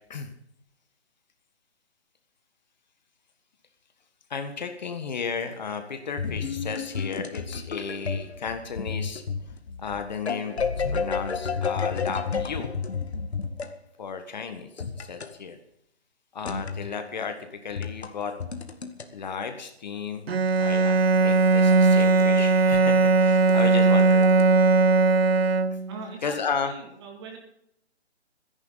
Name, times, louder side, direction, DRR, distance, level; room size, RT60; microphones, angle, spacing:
voice 1, 4.3-9.2 9.8-10.6 10.9-12.7 14.0-14.7 14.9-15.6 16.3-17.3 17.6-18.3 19.1-20.3 20.6-24.4 26.2-26.7, left 5 dB, 40° left, 7 dB, 1.5 m, -33 dB
sound 1, 6.2-13.7 14.8-15.3 16.5-16.9 17.7-19.1 20.5-22.4 22.7-22.8 23.4-24.4, left 5 dB, 70° left, 1.9 m, -31 dB
Bowed string instrument, 20.3-26.1, right 4 dB, 65° right, 1.0 m, -19 dB
voice 2, 25.9-27.4, right 4 dB, 25° right, 2 dB, 2.3 m, -41 dB
23.0 x 10.5 x 4.0 m, 0.77 s
hypercardioid pair, 160°, 33 cm